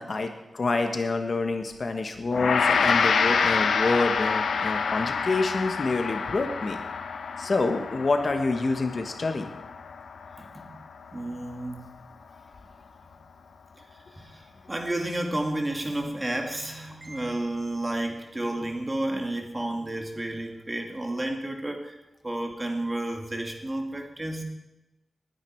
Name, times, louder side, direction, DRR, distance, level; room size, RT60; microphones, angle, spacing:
voice 1, 0.0-6.8 7.4-9.5, left 3 dB, 45° left, 6 dB, 1.3 m, -27 dB
Gong, 2.3-11.7, left 5 dB, 90° left, 0.9 m, -27 dB
voice 2, 11.1-11.9 14.2-21.9 22.2-24.4, right 1 dB, 20° right, 3 dB, 2.2 m, -31 dB
20.0 x 9.7 x 4.6 m, 0.96 s
wide cardioid pair, 110°, 0 cm